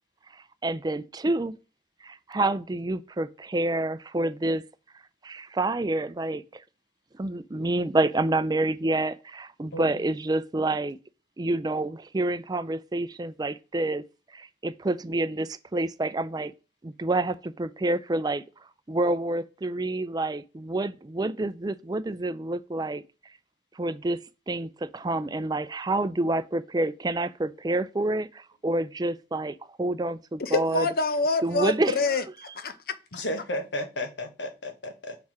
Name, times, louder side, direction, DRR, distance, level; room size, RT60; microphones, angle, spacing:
voice 1, 0.6-1.5 2.0-4.6 5.2-6.6 7.2-11.0 11.4-14.0 14.3-16.5 16.8-18.4 18.9-23.0 23.8-24.2 24.5-30.9 31.4-32.0, right 2 dB, 20° right, 0.4 m, -28 dB
voice 2, 9.7-10.1 33.1-35.2, left 1 dB, 80° left, 1.4 m, -33 dB
voice 3, 30.4-32.2 32.6-33.2, left 3 dB, 55° left, 0.7 m, -26 dB
5.8 x 4.6 x 4.8 m
head